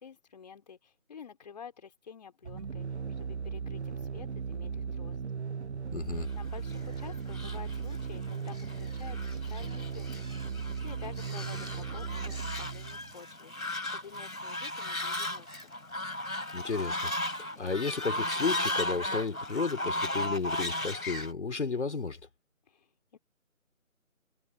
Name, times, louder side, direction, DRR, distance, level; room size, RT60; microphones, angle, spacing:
voice 1, 0.0-5.2 6.3-9.2 9.5-10.6 10.8-15.7 22.7-23.2, left 6 dB, 30° left, 3.4 m, -50 dB
sound 1, 2.4-13.2, right 6 dB, 55° right, 0.4 m, -37 dB
voice 2, 5.9-6.3 16.5-22.2, left 4 dB, 55° left, 2.6 m, -33 dB
Fowl, 6.5-21.3, left 1 dB, 85° left, 4.1 m, -36 dB
figure-of-eight pair, 160°, 42 cm